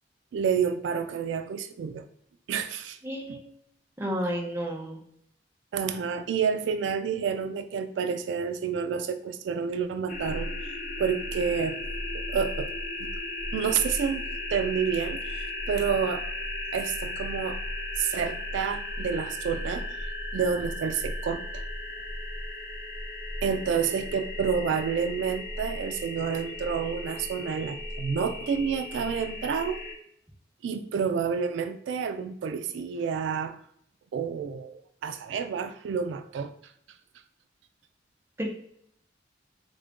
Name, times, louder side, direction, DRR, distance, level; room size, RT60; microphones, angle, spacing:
voice 1, 0.3-2.0 2.5-3.0 3.3-3.4 5.7-11.8 12.1-12.7 13.0-13.1 13.5-14.2 14.5-16.3 16.7-17.6 18.0-21.6 23.4-29.8 30.6-33.6 34.1-36.5, right 6 dB, 80° right, 8 dB, 0.3 m, -29 dB
voice 2, 3.0-3.4 4.0-5.0 38.4-38.5, equal, 15° right, -1 dB, 0.6 m, -31 dB
sound 1, 10.1-29.9, left 1 dB, 50° left, 0.7 m, -35 dB
3.6 x 2.5 x 3.5 m, 0.68 s
head